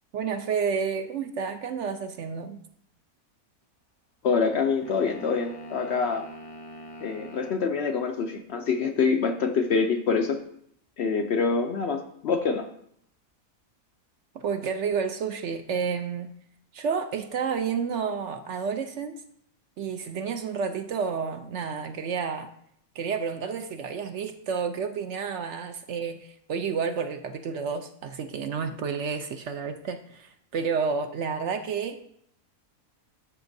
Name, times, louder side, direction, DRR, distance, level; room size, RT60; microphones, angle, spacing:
voice 1, 0.1-2.6 14.3-16.3 16.7-19.2 19.8-22.5 23.0-32.0, right 6 dB, 65° right, 7 dB, 0.8 m, -30 dB
voice 2, 4.2-6.3 7.0-10.4 11.0-12.7, left 5 dB, 65° left, 6 dB, 0.7 m, -25 dB
sound 1, 4.8-7.7, equal, 30° left, 0.8 m, -43 dB
13.0 x 5.9 x 2.6 m, 0.70 s
omnidirectional pair, 1.5 m